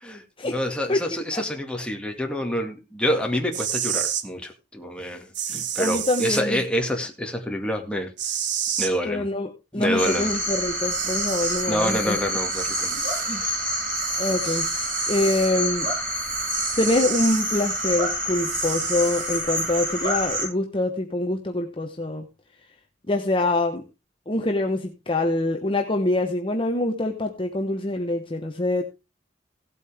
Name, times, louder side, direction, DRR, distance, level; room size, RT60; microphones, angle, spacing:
voice 1, 0.0-8.1 8.8-9.3 9.7-10.3 11.7-13.5, equal, 5° left, 2.1 m, -27 dB
voice 2, 0.9-1.4 5.8-6.6 9.0-9.5 9.7-12.2 12.9-13.4 14.2-14.7 15.1-15.9 16.8-22.3 23.1-23.8 24.3-28.8, left 2 dB, 30° left, 1.0 m, -25 dB
sound 1, 3.5-4.3 5.3-6.4 8.2-8.9 10.4-10.5 10.9-11.7 12.5-13.3 14.4-15.5 16.5-17.4 18.5-19.4, right 9 dB, 75° right, 1.4 m, -30 dB
sound 2, 10.0-20.5, equal, 50° right, 8.0 m, -27 dB
17.0 x 8.2 x 3.5 m
head